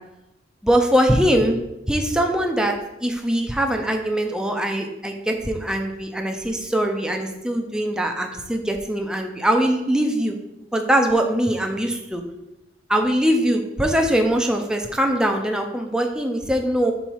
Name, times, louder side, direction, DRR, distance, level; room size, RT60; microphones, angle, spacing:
voice 1, 0.6-1.6 1.9-10.4 10.7-12.2 12.9-16.9, right 1 dB, 5° right, 3 dB, 0.5 m, -22 dB
5.6 x 4.0 x 4.5 m, 0.91 s
head